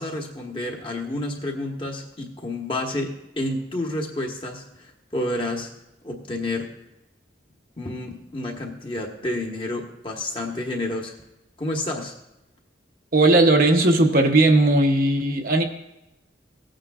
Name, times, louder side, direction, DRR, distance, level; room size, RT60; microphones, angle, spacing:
voice 1, 0.0-4.6 5.1-5.7 6.0-6.7 7.8-11.2 11.6-12.1, left 1 dB, 25° left, 1 dB, 1.3 m, -29 dB
voice 2, 13.1-15.6, right 2 dB, 50° right, 3 dB, 0.9 m, -17 dB
17.0 x 8.9 x 2.4 m, 0.89 s
head